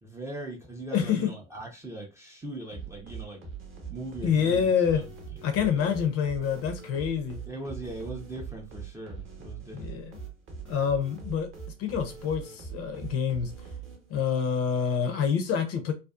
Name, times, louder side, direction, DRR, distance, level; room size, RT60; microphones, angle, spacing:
voice 1, 0.0-3.4 3.9-6.0 7.5-10.0, right 2 dB, 5° right, 0.5 m, -40 dB
voice 2, 0.9-1.3 4.2-5.0 5.4-7.4 9.7-10.2 10.7-11.5 11.8-13.5 14.1-15.9, left 7 dB, 40° left, 0.6 m, -27 dB
sound 1, 2.7-14.3, right 6 dB, 30° right, 0.9 m, -42 dB
2.5 x 2.3 x 2.3 m
hypercardioid pair, 80°, 39 cm